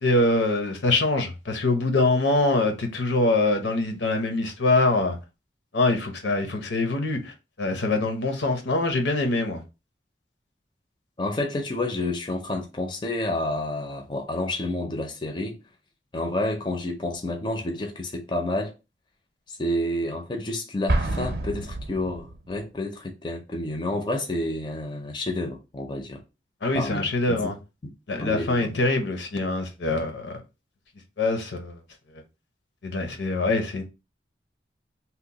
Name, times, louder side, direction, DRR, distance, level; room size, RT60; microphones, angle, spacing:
voice 1, 0.0-5.2 5.7-9.6 26.6-27.6 28.1-30.3 31.2-31.8 32.8-33.8, left 2 dB, 80° left, 0.7 m, -24 dB
voice 2, 11.2-15.6 16.1-18.7 19.5-26.2 26.7-27.5 27.8-28.8, left 1 dB, 25° left, 0.4 m, -29 dB
Explosion, 20.9-22.6, right 1 dB, 55° right, 0.5 m, -28 dB
2.9 x 2.1 x 3.9 m
head